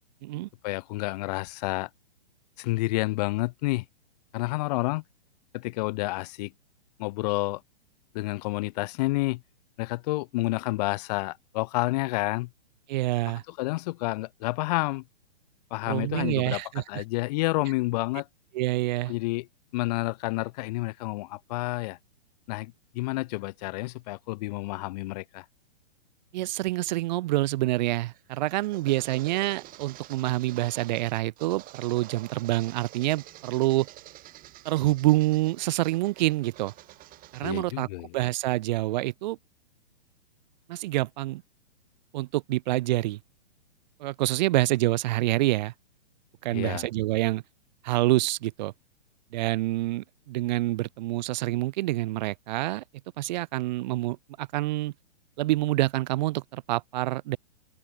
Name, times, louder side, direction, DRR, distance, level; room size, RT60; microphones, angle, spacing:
voice 1, 0.6-1.9 2.6-3.8 4.3-5.0 5.5-6.5 7.0-7.6 8.1-9.4 9.8-12.5 13.5-15.0 15.7-18.3 19.1-19.5 19.7-22.0 22.5-25.4 37.4-38.1 46.5-46.9, left 21 dB, 40° left, 1.3 m, -29 dB
voice 2, 12.9-13.4 15.9-17.0 18.5-19.1 26.3-33.9 34.6-36.7 37.3-37.9 38.1-39.4 40.7-41.4 42.1-43.2 44.0-45.7 46.4-47.4 47.8-48.7 49.3-52.8 53.2-54.9 55.4-57.4, right 17 dB, 45° right, 1.2 m, -27 dB
sound 1, 28.0-37.6, right 16 dB, 25° right, 3.1 m, -48 dB
open air
hypercardioid pair, 130°, 32 cm